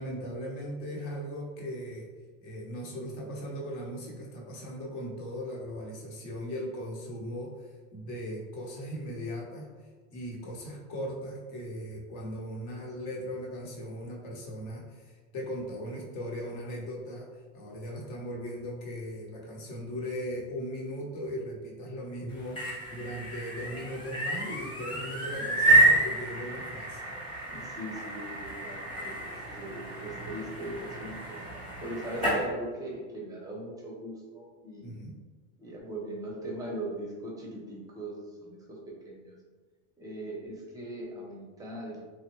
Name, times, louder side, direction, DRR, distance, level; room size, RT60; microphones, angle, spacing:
voice 1, 0.0-2.1 2.4-9.7 10.1-27.0 34.8-35.2, equal, 55° left, -1 dB, 1.0 m, -38 dB
sound 1, 22.3-32.4, right 2 dB, 10° left, 0.8 m, -29 dB
voice 2, 27.5-31.4 31.8-34.9 35.6-38.8 39.1-39.3 40.0-42.0, right 1 dB, 10° right, -3 dB, 0.5 m, -40 dB
3.0 x 2.1 x 3.0 m, 1.4 s
supercardioid pair, 115°, 46 cm